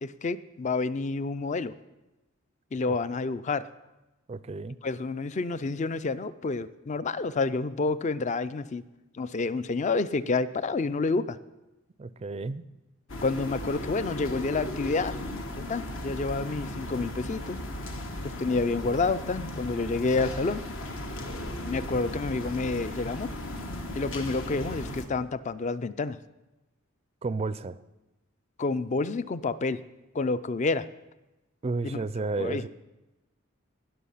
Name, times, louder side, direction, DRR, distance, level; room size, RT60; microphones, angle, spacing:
voice 1, 0.0-1.7 2.7-3.7 4.8-8.8 9.1-11.4 13.2-15.2 15.6-17.6 18.2-20.6 21.7-23.3 23.9-26.2 28.6-29.8 30.1-30.8 31.8-32.0 32.4-32.6, left 3 dB, 35° left, 15 dB, 0.4 m, -29 dB
voice 2, 4.3-4.8 12.0-12.6 27.2-27.8 31.6-32.7, right 3 dB, 30° right, 15 dB, 0.4 m, -32 dB
sound 1, 13.1-25.1, left 1 dB, 70° left, 1.3 m, -36 dB
18.5 x 6.5 x 5.6 m, 1.0 s
head